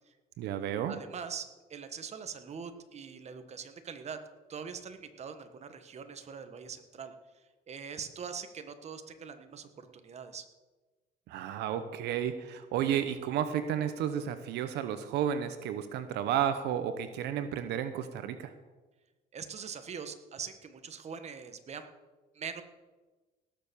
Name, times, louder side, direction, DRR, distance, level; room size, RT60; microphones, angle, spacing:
voice 1, 0.4-0.9 11.3-18.5, right 9 dB, 80° right, 10 dB, 0.9 m, -32 dB
voice 2, 0.9-1.4 1.7-4.2 4.5-7.1 7.7-10.4 19.3-21.9 22.3-22.6, right 6 dB, 40° right, 8 dB, 1.4 m, -42 dB
18.0 x 7.0 x 7.0 m, 1.2 s
cardioid pair, 110°, 17 cm